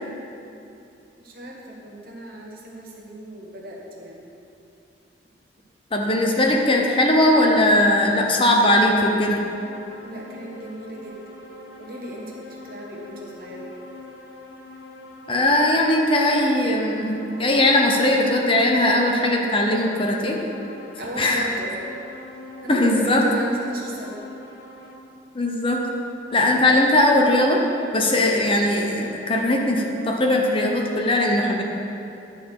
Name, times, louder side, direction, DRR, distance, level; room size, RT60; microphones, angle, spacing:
voice 1, 1.2-4.3 10.0-11.4 11.8-13.7 21.0-21.7 22.6-24.2, equal, 55° right, -3 dB, 1.5 m, -35 dB
voice 2, 5.9-9.4 15.3-20.4 21.2-21.5 22.7-23.2 25.3-25.8 26.3-27.6 27.9-31.6, left 1 dB, 30° left, 0 dB, 0.8 m, -19 dB
sound 1, 8.6-25.0, left 2 dB, 85° left, 1.1 m, -43 dB
11.0 x 4.2 x 6.8 m, 2.8 s
head